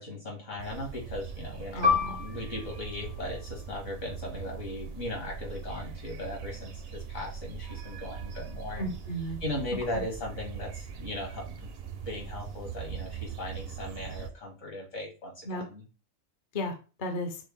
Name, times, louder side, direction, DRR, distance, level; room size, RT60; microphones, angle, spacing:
voice 1, 0.0-8.9 9.4-15.8, left 2 dB, 70° left, -2 dB, 2.2 m, -38 dB
sound 1, 0.6-14.3, right 7 dB, 60° right, 0.7 m, -41 dB
voice 2, 1.7-2.2 8.8-9.4 9.9-10.0 15.5-15.7 16.5-17.4, equal, 45° left, 4 dB, 0.7 m, -34 dB
Piano, 1.8-6.9 7.2-7.4 8.1-8.5, left 6 dB, 85° right, 1.4 m, -33 dB
6.1 x 2.2 x 3.5 m, 0.34 s
omnidirectional pair, 1.3 m